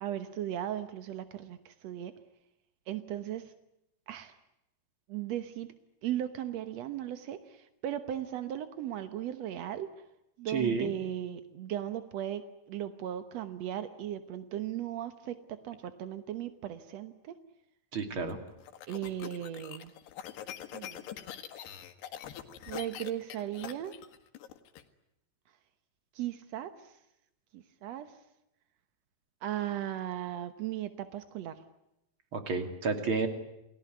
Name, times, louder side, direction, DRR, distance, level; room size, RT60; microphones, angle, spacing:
voice 1, 0.0-2.1 2.9-3.5 4.1-4.4 5.1-5.7 6.0-9.9 10.4-17.3 18.9-19.9 20.7-21.0 22.7-23.9 26.1-26.9 27.5-28.1 29.4-31.6, right 11 dB, 75° right, 10 dB, 1.5 m, -37 dB
voice 2, 10.5-10.9 17.9-18.4 32.3-33.3, right 4 dB, 35° right, 7 dB, 3.0 m, -30 dB
sound 1, 18.3-24.8, left 10 dB, 85° left, 3.7 m, -44 dB
29.0 x 20.0 x 9.5 m, 0.87 s
omnidirectional pair, 4.6 m